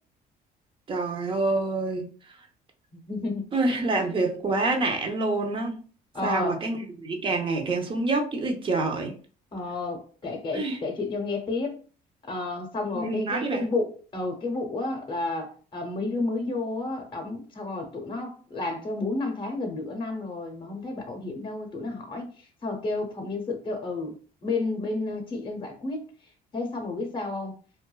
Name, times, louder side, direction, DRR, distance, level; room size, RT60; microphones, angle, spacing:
voice 1, 0.9-2.1 3.5-5.8 6.2-9.1 10.5-10.8 12.9-13.7, right 2 dB, 30° right, 0.6 m, -27 dB
voice 2, 3.1-3.4 4.0-4.1 6.1-6.6 9.5-11.8 12.3-22.3 22.6-24.2 24.4-26.1 26.5-27.5, left 3 dB, 30° left, 0.7 m, -31 dB
2.4 x 2.2 x 2.2 m
cardioid pair, 110°, 17 cm